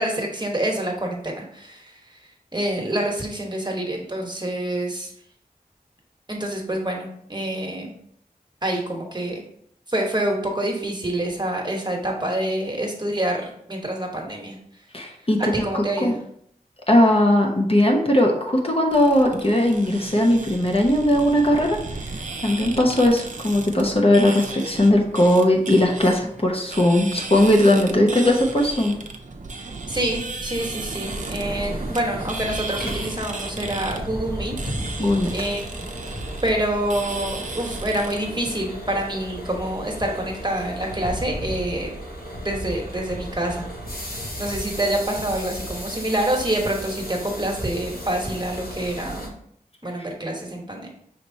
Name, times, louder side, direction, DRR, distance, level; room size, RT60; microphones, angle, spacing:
voice 1, 0.0-2.2 2.5-5.1 6.3-7.9 8.6-9.4 9.9-14.6 15.1-16.1 29.9-34.6 35.0-35.6 36.4-41.9 42.4-43.7 43.9-49.3 49.8-50.9, right 1 dB, 30° right, 0 dB, 1.1 m, -27 dB
voice 2, 14.9-16.1 16.9-21.8 22.4-29.0 35.0-35.3, left 1 dB, 40° left, 1 dB, 0.8 m, -19 dB
sound 1, 18.9-38.2, right 3 dB, 55° right, 0.5 m, -35 dB
sound 2, 31.0-49.3, equal, 75° left, 1.0 m, -35 dB
5.8 x 3.1 x 2.7 m, 0.68 s
wide cardioid pair, 40°, 15 cm